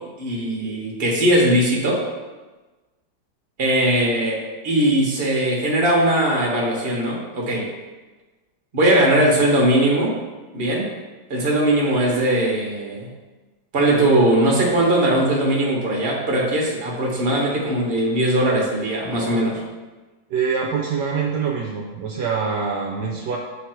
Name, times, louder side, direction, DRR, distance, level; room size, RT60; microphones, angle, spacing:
voice 1, 0.2-2.0 3.6-7.7 8.7-10.1 10.5-10.9 11.3-13.1 13.7-19.6, right 1 dB, 35° right, -2 dB, 1.3 m, -20 dB
voice 2, 20.3-23.4, right 5 dB, 75° right, 1 dB, 1.1 m, -24 dB
7.1 x 3.3 x 4.5 m, 1.2 s
omnidirectional pair, 2.0 m